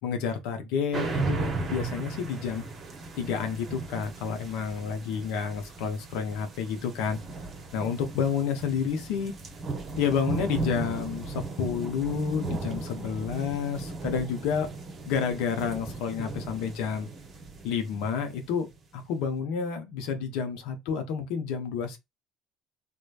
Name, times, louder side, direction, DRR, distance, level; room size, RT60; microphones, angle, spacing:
voice 1, 0.0-2.6 3.2-7.2 7.7-9.3 10.0-14.7 15.1-17.1 17.6-18.7 18.9-22.0, left 6 dB, 65° left, 0.6 m, -30 dB
sound 1, 0.9-18.7, right 3 dB, 40° right, 0.7 m, -36 dB
3.1 x 2.2 x 2.4 m
figure-of-eight pair, 60°, 0 cm